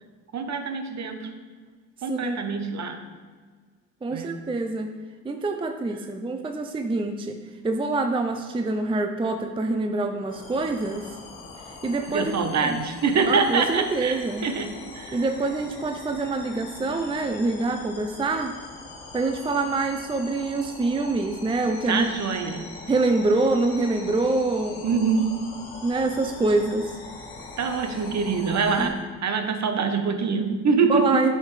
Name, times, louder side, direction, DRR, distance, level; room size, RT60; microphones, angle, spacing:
voice 1, 0.3-1.3 2.0-3.0 4.1-4.3 12.1-14.2 14.4-15.2 21.9-22.7 24.8-25.4 27.6-31.2, right 5 dB, 45° right, 7 dB, 1.0 m, -25 dB
voice 2, 4.0-4.9 5.2-11.1 11.6-12.3 12.6-12.8 13.3-14.5 15.1-18.5 19.1-22.1 22.9-25.0 25.8-26.9 28.8-28.9 30.9-31.4, right 3 dB, 15° right, 6 dB, 0.5 m, -25 dB
sound 1, 10.3-28.9, left 3 dB, 70° left, 1.7 m, -42 dB
8.5 x 5.7 x 3.2 m, 1.5 s
hypercardioid pair, 55°, 40 cm